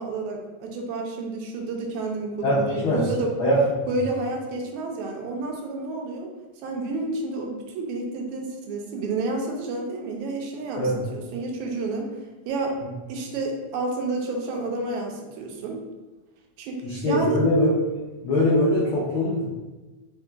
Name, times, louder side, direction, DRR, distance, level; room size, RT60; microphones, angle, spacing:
voice 1, 0.0-3.3 3.9-6.3 6.6-12.1 12.5-12.7 13.1-15.8 16.6-17.4, right 3 dB, 90° right, 1 dB, 2.0 m, -30 dB
voice 2, 2.4-3.1 3.4-3.6 10.8-11.0 16.8-17.7 18.2-19.4, left 1 dB, 85° left, -6 dB, 1.1 m, -22 dB
4.4 x 3.7 x 2.4 m, 1.2 s
omnidirectional pair, 3.3 m